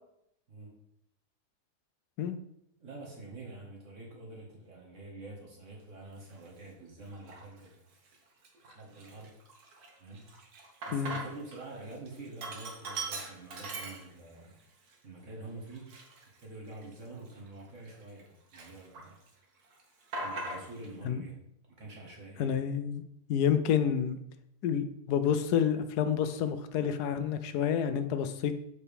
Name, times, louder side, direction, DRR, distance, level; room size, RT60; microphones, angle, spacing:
voice 1, 2.8-7.7 8.6-9.3 10.0-10.3 10.9-14.6 15.0-15.8 16.4-19.2 20.2-21.4 21.8-22.6, right 2 dB, 50° right, -2 dB, 1.8 m, -47 dB
Sink (filling or washing), 6.3-6.5 7.1-7.7 8.1-8.2 8.4-11.6 11.9-14.5 14.9-15.0 15.7-18.2 18.5-19.3 19.6-20.9, right 2 dB, 70° right, 1.6 m, -41 dB
voice 2, 22.4-23.0 23.3-24.2 24.6-28.5, left 8 dB, 80° left, 10 dB, 1.1 m, -29 dB
7.0 x 4.9 x 3.4 m, 0.76 s
omnidirectional pair, 1.7 m